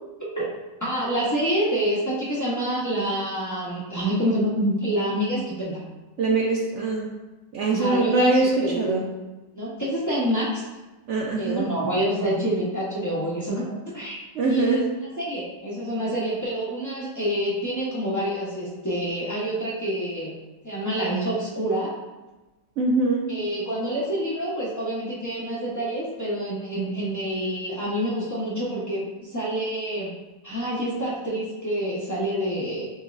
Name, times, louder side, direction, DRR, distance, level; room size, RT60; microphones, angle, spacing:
voice 1, 0.8-5.8 7.7-9.0 9.5-10.7 11.3-13.6 13.9-14.8 15.2-20.4 20.6-21.9 23.3-30.2 30.4-32.9, right 1 dB, 25° left, -8 dB, 0.4 m, -27 dB
voice 2, 6.2-7.1 7.5-9.0 11.1-11.7 14.3-14.8 22.8-23.3, right 3 dB, 70° right, -2 dB, 0.7 m, -22 dB
5.3 x 3.0 x 2.4 m, 1.1 s
omnidirectional pair, 1.8 m